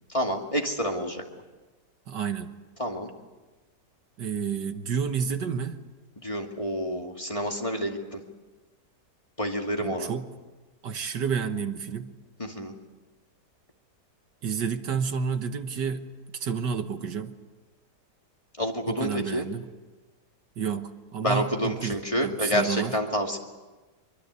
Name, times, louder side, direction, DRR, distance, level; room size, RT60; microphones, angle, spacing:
voice 1, 0.1-1.2 2.8-3.1 6.2-8.2 9.4-10.1 12.4-12.7 18.6-19.5 21.2-23.4, equal, 20° left, 2 dB, 2.4 m, -28 dB
voice 2, 2.1-2.5 4.2-5.8 9.8-10.3 10.8-12.2 14.4-17.4 18.9-19.7 20.6-21.9 22.2-22.9, right 6 dB, 75° right, 8 dB, 1.9 m, -30 dB
24.5 x 24.0 x 8.2 m, 1.2 s
omnidirectional pair, 1.9 m